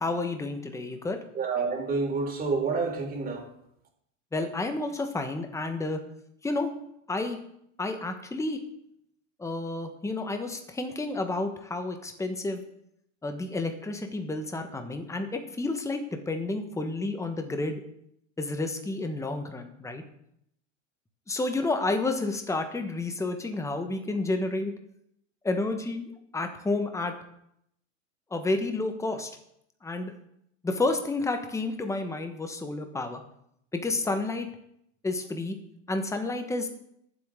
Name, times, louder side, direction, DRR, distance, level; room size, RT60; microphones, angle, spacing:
voice 1, 0.0-1.2 4.3-6.0 6.4-6.7 7.1-7.4 7.8-8.6 9.4-12.6 13.2-17.8 18.4-20.0 21.3-24.7 25.4-27.1 28.3-29.3 29.8-30.1 30.6-33.2 33.7-34.5 35.0-35.6 35.9-36.7, left 2 dB, 10° left, 6 dB, 1.4 m, -30 dB
voice 2, 1.4-3.4, right 4 dB, 25° right, 1 dB, 3.8 m, -28 dB
21.5 x 7.8 x 3.8 m, 0.76 s
hypercardioid pair, 120°, 38 cm